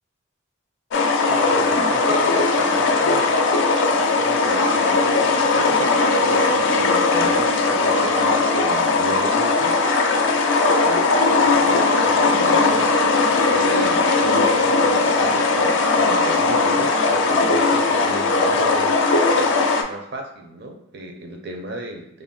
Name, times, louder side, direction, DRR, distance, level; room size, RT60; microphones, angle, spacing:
sound 1, 0.9-19.8, left 3 dB, 70° left, 0.4 m, -18 dB
voice 1, 1.2-3.4 4.2-9.8 10.7-11.1 11.4-12.9 13.5-19.1 19.9-22.2, right 1 dB, 55° right, 3 dB, 0.5 m, -34 dB
2.5 x 2.1 x 3.6 m, 0.82 s
head